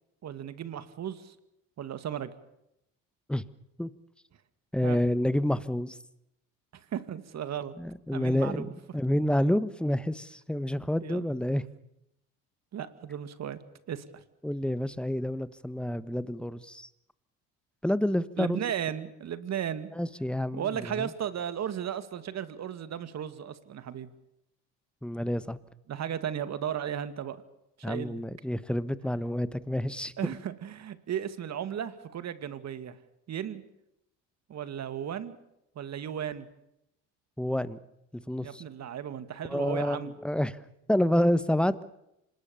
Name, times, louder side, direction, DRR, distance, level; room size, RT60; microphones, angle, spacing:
voice 1, 0.2-1.4 1.8-2.3 4.8-5.0 6.7-7.8 8.1-8.7 11.0-11.3 12.7-13.6 13.9-14.2 18.4-19.9 20.5-24.1 25.9-27.4 27.8-28.2 30.2-33.0 33.3-33.6 34.5-35.4 35.8-36.5 38.4-40.1, right 9 dB, 50° right, 12 dB, 2.1 m, -35 dB
voice 2, 4.7-6.0 7.8-8.7 8.9-11.6 14.4-16.9 17.8-18.6 19.9-21.1 25.0-25.6 27.8-30.1 37.4-37.8 38.1-38.6 39.5-40.6 40.9-41.8, left 1 dB, 5° left, 15 dB, 1.2 m, -28 dB
26.0 x 20.5 x 7.0 m, 0.82 s
supercardioid pair, 80°, 35 cm